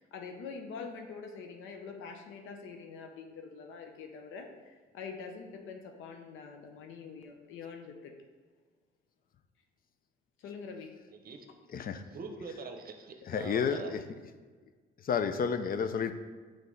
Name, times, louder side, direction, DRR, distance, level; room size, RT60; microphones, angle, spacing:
voice 1, 0.0-8.1 10.4-10.9, left 5 dB, 85° left, 4 dB, 0.7 m, -45 dB
voice 2, 11.1-11.5 11.9-13.9, right 4 dB, 50° right, 5 dB, 0.8 m, -44 dB
voice 3, 11.7-12.0 13.3-14.0 15.0-16.1, left 6 dB, 45° left, 9 dB, 0.5 m, -30 dB
6.2 x 3.4 x 5.3 m, 1.5 s
cardioid pair, 90°, 20 cm